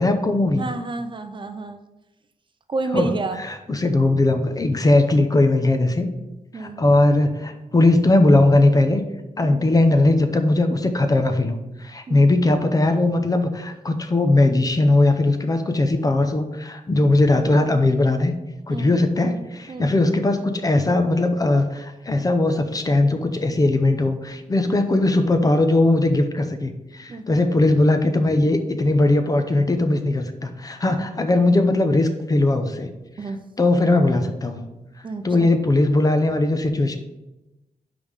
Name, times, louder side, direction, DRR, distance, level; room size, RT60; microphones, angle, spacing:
voice 1, 0.0-0.7 2.9-6.1 6.5-9.0 9.4-18.3 18.7-32.9 33.2-34.7 35.2-37.0, left 2 dB, 25° left, 7 dB, 0.6 m, -19 dB
voice 2, 0.6-1.8 2.7-3.4 6.5-6.8 9.4-9.6 12.1-12.2 18.7-18.9 19.7-19.9 24.7-24.8 27.1-27.4 33.2-33.4 35.0-35.5, right 3 dB, 35° right, 8 dB, 0.5 m, -30 dB
5.4 x 5.1 x 6.3 m, 1.0 s
wide cardioid pair, 165°, 14 cm